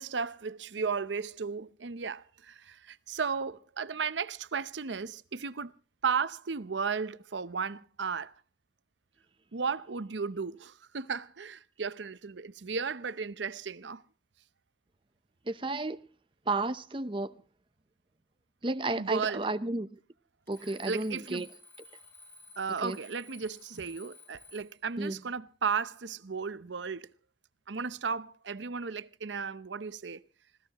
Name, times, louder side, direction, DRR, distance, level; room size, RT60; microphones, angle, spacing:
voice 1, 0.0-5.7 6.0-8.3 9.5-14.0 19.0-19.5 20.6-21.5 22.6-27.1 27.7-30.2, right 5 dB, 90° right, 0.7 m, -35 dB
voice 2, 15.5-16.0 16.5-17.3 18.6-19.9 20.5-21.5 22.8-23.0 25.0-25.2, right 2 dB, 30° right, 0.8 m, -32 dB
Alarm, 20.5-24.9, left 3 dB, 10° left, 4.6 m, -54 dB
26.0 x 16.5 x 3.0 m
head